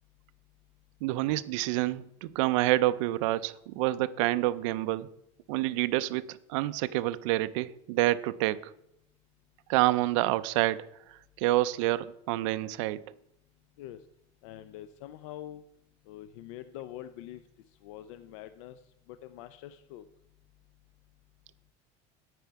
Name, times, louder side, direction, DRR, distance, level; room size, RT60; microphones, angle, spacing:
voice 1, 1.0-5.1 5.5-8.7 9.7-10.8 11.4-13.0, right 17 dB, 80° right, 0.5 m, -28 dB
voice 2, 14.4-15.6 16.1-17.4 17.8-18.8 19.1-20.0, left 12 dB, 85° left, 0.5 m, -44 dB
9.2 x 9.2 x 4.6 m
cardioid pair, 155°, 16 cm